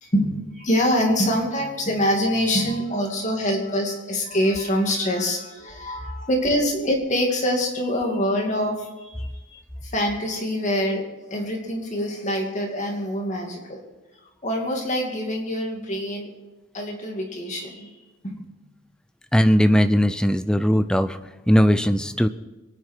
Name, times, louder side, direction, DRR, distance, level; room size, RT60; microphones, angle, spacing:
voice 1, 0.0-11.0 11.3-13.8 14.4-16.3 16.7-17.9 18.2-18.4, equal, 35° left, 1 dB, 2.5 m, -25 dB
voice 2, 19.3-21.2 21.5-22.3, equal, 5° left, 11 dB, 0.5 m, -18 dB
23.5 x 9.7 x 4.6 m, 1.2 s
head